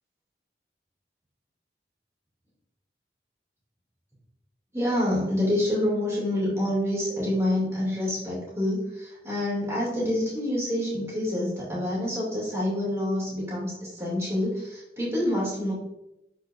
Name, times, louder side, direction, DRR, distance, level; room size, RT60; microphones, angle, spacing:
voice 1, 4.7-15.7, left 1 dB, 15° right, -6 dB, 2.5 m, -27 dB
10.0 x 4.7 x 2.6 m, 0.88 s
head